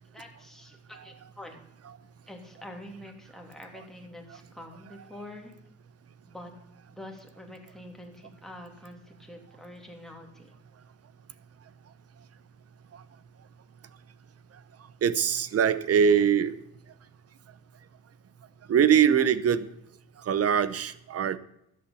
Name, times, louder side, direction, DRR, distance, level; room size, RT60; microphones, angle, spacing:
voice 1, 0.0-1.7 2.3-5.6 6.3-6.5 6.9-10.6, left 1 dB, ahead, 1 dB, 3.0 m, -46 dB
voice 2, 15.0-16.5 18.7-19.6 20.3-21.4, right 8 dB, 50° right, 15 dB, 0.9 m, -22 dB
12.5 x 8.6 x 6.8 m, 0.78 s
cardioid pair, 90°, 30 cm